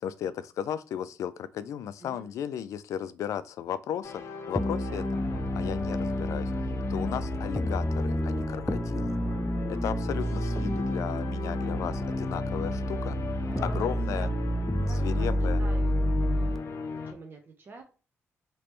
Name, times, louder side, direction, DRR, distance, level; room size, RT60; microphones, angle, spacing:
voice 1, 0.0-5.2 5.5-6.5 6.9-9.2 9.8-13.2 13.6-14.3 15.0-15.6, left 9 dB, 80° left, 0.3 m, -35 dB
sound 1, 4.0-17.1, left 4 dB, 60° left, 0.7 m, -38 dB
sound 2, 4.6-16.6, equal, 10° left, 0.4 m, -29 dB
voice 2, 9.0-9.9 13.5-14.3 14.8-16.7 17.0-17.8, right 3 dB, 45° right, 0.8 m, -46 dB
3.3 x 2.9 x 3.0 m
cardioid pair, 80°, 5 cm